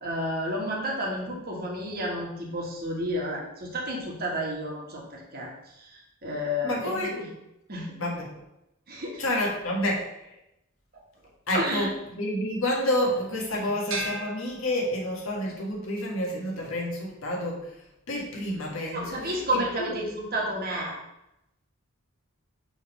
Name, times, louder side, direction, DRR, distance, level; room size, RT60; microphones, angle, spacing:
voice 1, 0.0-5.5 5.8-7.3 7.7-8.0 8.9-9.2 11.5-11.9 13.6-13.7 18.9-21.0, equal, 45° right, -2 dB, 1.6 m, -31 dB
voice 2, 6.6-7.1 8.0-8.4 9.2-10.3 11.5-17.8 18.1-19.9, left 1 dB, 65° left, -2 dB, 1.8 m, -29 dB
sound 1, 13.9-15.4, right 2 dB, 65° right, 1.5 m, -36 dB
6.1 x 3.7 x 5.4 m, 0.85 s
head